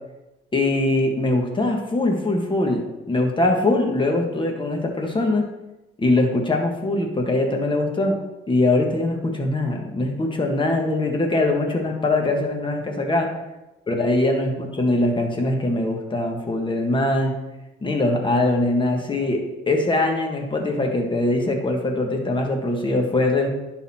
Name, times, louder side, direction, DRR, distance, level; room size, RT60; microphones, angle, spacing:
voice 1, 0.5-5.4 6.0-8.2 8.5-13.3 13.9-17.3 17.8-23.5, left 2 dB, 25° left, 2 dB, 1.6 m, -22 dB
11.0 x 4.1 x 4.3 m, 1.0 s
cardioid pair, 90°, 20 cm